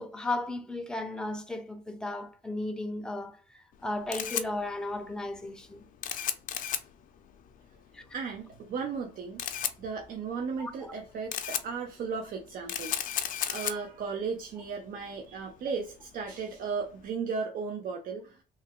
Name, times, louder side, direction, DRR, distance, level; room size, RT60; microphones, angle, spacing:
voice 1, 0.0-3.4 3.8-5.8 7.9-8.0 10.6-11.0, left 2 dB, 5° left, 0.6 m, -35 dB
Camera, 3.7-17.1, left 10 dB, 55° left, 0.5 m, -37 dB
voice 2, 8.1-9.4 9.8-13.1 13.4-18.4, right 5 dB, 55° right, 0.5 m, -35 dB
3.3 x 2.1 x 3.6 m
cardioid pair, 110°, 17 cm